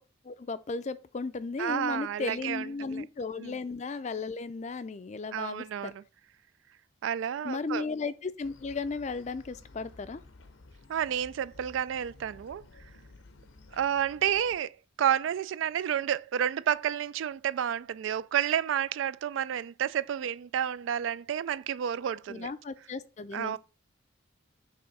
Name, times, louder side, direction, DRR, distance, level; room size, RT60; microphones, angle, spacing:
voice 1, 0.2-5.9 7.4-10.2 22.3-23.6, left 4 dB, 35° left, 0.4 m, -35 dB
voice 2, 1.6-3.0 3.4-3.6 5.3-6.0 7.0-7.9 10.9-12.6 13.7-22.5 23.3-23.6, right 9 dB, 75° right, 0.3 m, -30 dB
sound 1, 8.4-14.6, left 2 dB, 80° left, 0.8 m, -54 dB
5.5 x 3.6 x 5.3 m
head